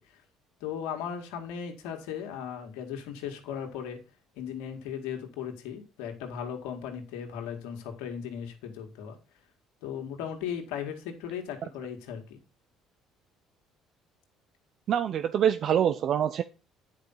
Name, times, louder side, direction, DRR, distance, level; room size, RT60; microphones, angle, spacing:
voice 1, 0.6-4.0 4.4-9.2 9.8-12.4, left 8 dB, 80° left, 3 dB, 2.0 m, -37 dB
voice 2, 14.9-16.4, right 9 dB, 55° right, 10 dB, 0.6 m, -25 dB
9.4 x 5.1 x 5.7 m, 0.31 s
supercardioid pair, 70°, 0 cm